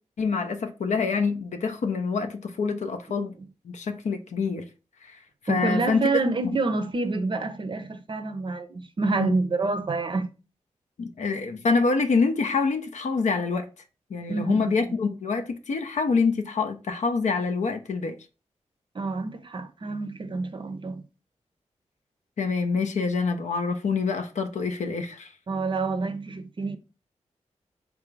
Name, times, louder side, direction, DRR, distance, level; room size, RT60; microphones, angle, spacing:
voice 1, 0.2-3.3 3.6-4.7 5.0-5.2 5.4-6.1 6.4-6.6 9.1-9.3 11.0-13.7 14.1-18.2 22.4-25.3, left 4 dB, 70° left, 0.6 m, -26 dB
voice 2, 5.5-10.3 14.3-15.0 18.9-21.0 25.5-26.8, right 3 dB, 40° right, 0.5 m, -28 dB
3.5 x 2.5 x 3.1 m
cardioid pair, 50°, 12 cm